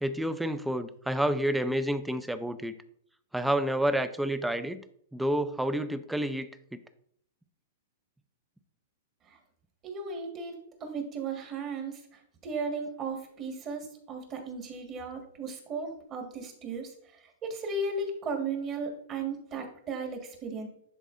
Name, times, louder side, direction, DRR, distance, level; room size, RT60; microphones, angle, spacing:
voice 1, 0.0-2.7 3.3-4.8 5.1-6.8, right 1 dB, 5° right, 12 dB, 0.4 m, -29 dB
voice 2, 9.8-16.9 17.2-20.7, right 3 dB, 30° right, 3 dB, 1.5 m, -36 dB
10.0 x 4.1 x 2.5 m, 0.69 s
hypercardioid pair, 135°, 0 cm